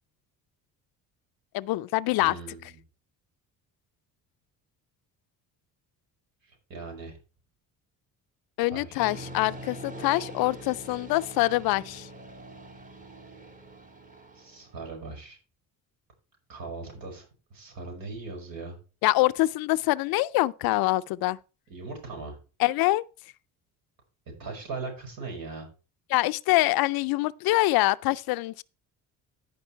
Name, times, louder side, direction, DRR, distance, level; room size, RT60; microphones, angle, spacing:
voice 1, 1.5-2.3 8.6-12.1 19.0-21.4 22.6-23.0 26.1-28.6, left 18 dB, 80° left, 0.5 m, -25 dB
voice 2, 2.2-2.8 6.4-7.2 8.6-9.1 14.3-15.4 16.5-17.2 17.5-18.8 21.7-22.4 24.4-25.7, right 3 dB, 70° right, 5.8 m, -39 dB
sound 1, 9.0-14.8, right 1 dB, 20° right, 1.7 m, -43 dB
14.5 x 5.4 x 4.5 m
cardioid pair, 120°, 36 cm